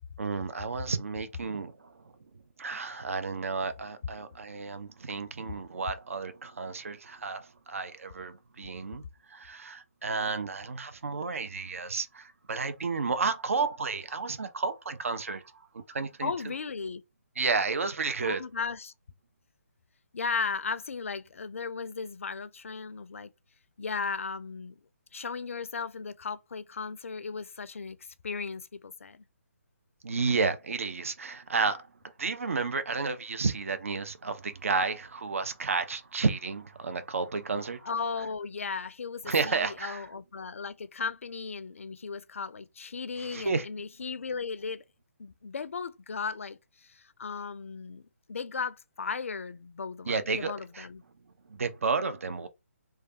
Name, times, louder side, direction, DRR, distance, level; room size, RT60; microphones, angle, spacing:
voice 1, 0.2-2.0 2.6-9.0 9.3-16.3 17.4-18.4 30.0-37.9 39.3-40.1 43.2-43.7 50.1-50.9 51.5-52.5, right 4 dB, 60° right, 0.4 m, -32 dB
voice 2, 16.2-17.0 18.2-18.9 20.1-23.3 23.8-24.8 25.1-29.2 37.8-44.8 45.2-48.0 48.3-51.0, left 5 dB, 60° left, 0.4 m, -36 dB
3.2 x 2.3 x 2.7 m
figure-of-eight pair, 140°, 8 cm